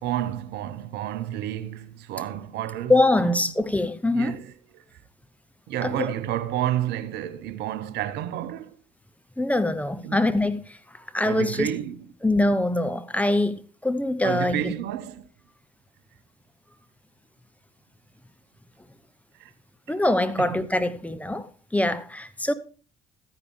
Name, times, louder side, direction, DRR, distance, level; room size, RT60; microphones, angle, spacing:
voice 1, 0.0-2.9 3.2-3.5 4.1-4.8 5.7-8.8 10.0-10.2 11.2-12.0 14.2-15.3 19.4-19.5 20.4-20.6, right 12 dB, 55° right, 0.7 m, -30 dB
voice 2, 2.9-4.4 5.8-6.1 9.4-11.7 12.2-14.7 19.9-22.5, left 2 dB, 5° left, 0.7 m, -24 dB
13.5 x 9.9 x 3.2 m
figure-of-eight pair, 45°, 20 cm